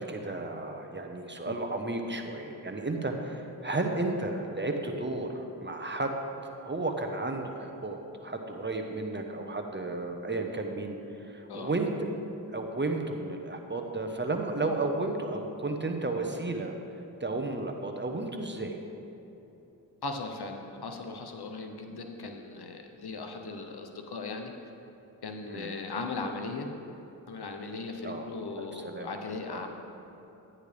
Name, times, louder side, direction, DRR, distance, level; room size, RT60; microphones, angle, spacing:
voice 1, 0.0-6.1 6.6-11.9 12.5-16.7 17.2-18.8 25.5-25.7 28.0-28.3 28.6-29.1 29.5-29.7, right 2 dB, 25° right, 3 dB, 1.1 m, -33 dB
voice 2, 20.0-24.5 25.2-26.7 27.3-29.7, left 3 dB, 65° left, 4 dB, 1.1 m, -38 dB
11.0 x 9.8 x 3.4 m, 3.0 s
cardioid pair, 45°, 41 cm